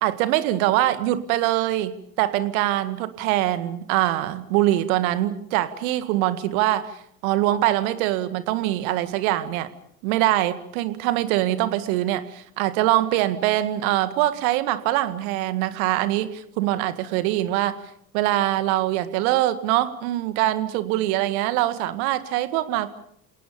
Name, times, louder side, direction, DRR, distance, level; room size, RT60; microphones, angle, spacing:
voice 1, 0.0-9.7 10.0-17.8 18.1-22.9, right 14 dB, 65° right, 13 dB, 2.0 m, -23 dB
28.5 x 18.5 x 7.0 m, 0.66 s
figure-of-eight pair, 65°, 46 cm